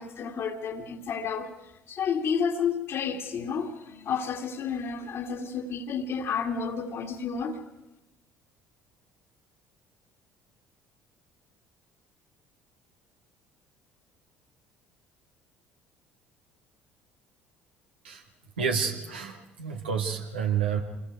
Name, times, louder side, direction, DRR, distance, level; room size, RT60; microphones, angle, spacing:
voice 1, 0.0-1.5 1.9-7.6, left 6 dB, 50° left, 2.0 m, -31 dB
voice 2, 18.6-20.8, right 7 dB, 80° right, 2.0 m, -29 dB
27.5 x 21.0 x 4.7 m
figure-of-eight pair, 55°, 6 cm